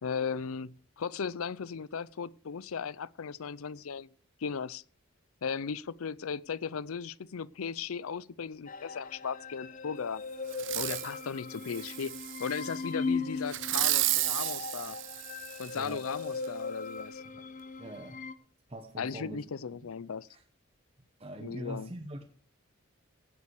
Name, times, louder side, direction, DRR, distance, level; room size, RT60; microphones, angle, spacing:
voice 1, 0.0-4.1 4.4-4.8 5.4-10.2 10.7-12.1 12.4-15.0 15.6-17.2 19.0-20.3 21.4-21.9, left 6 dB, 80° left, 0.5 m, -36 dB
sound 1, 8.7-18.3, left 4 dB, 35° left, 0.8 m, -39 dB
Fireworks, 10.5-11.1 11.7-12.7 13.5-15.9 16.4-16.5, right 17 dB, 60° right, 0.6 m, -32 dB
voice 2, 17.8-18.2 18.7-19.4 20.3-20.4 21.2-22.2, right 1 dB, 25° right, 1.1 m, -43 dB
16.5 x 8.3 x 4.8 m
head